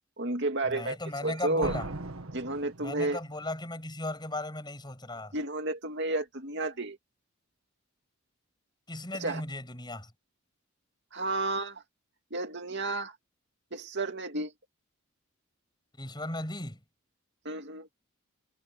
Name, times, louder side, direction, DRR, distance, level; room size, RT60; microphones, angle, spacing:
voice 1, 0.2-1.7 2.3-3.2 5.3-7.0 9.2-9.4 11.1-11.8 12.3-13.1 13.7-14.5 17.4-17.9, right 2 dB, 55° right, 2.4 m, -32 dB
voice 2, 0.7-1.9 2.8-5.3 8.9-10.1 16.0-16.8, left 2 dB, 20° left, 6.8 m, -37 dB
sound 1, 1.6-3.4, right 2 dB, 75° right, 1.6 m, -38 dB
head